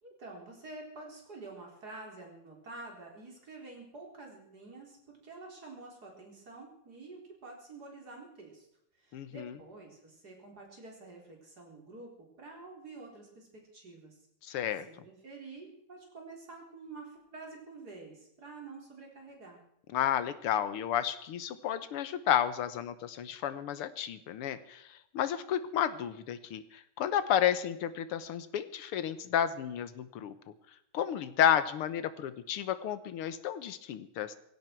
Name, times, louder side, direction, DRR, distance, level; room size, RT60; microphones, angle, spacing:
voice 1, 0.0-8.7 9.0-14.2 14.5-14.6 14.9-19.6, right 3 dB, 45° right, 0 dB, 4.5 m, -48 dB
voice 2, 9.1-9.6 14.4-14.9 19.9-30.3 30.9-34.4, left 9 dB, 90° left, 13 dB, 2.0 m, -31 dB
18.0 x 16.0 x 4.6 m, 0.77 s
omnidirectional pair, 2.4 m